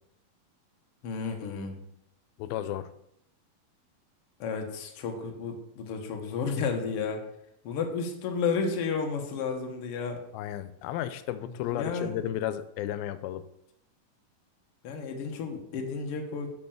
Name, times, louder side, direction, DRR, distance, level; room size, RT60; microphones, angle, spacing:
voice 1, 1.0-1.8 4.4-7.2 7.6-10.2 11.7-12.1 14.8-16.5, left 5 dB, 65° left, 3 dB, 1.5 m, -32 dB
voice 2, 2.4-2.9 10.3-13.4, left 12 dB, 85° left, 13 dB, 2.4 m, -33 dB
6.0 x 5.5 x 6.9 m, 0.78 s
omnidirectional pair, 4.2 m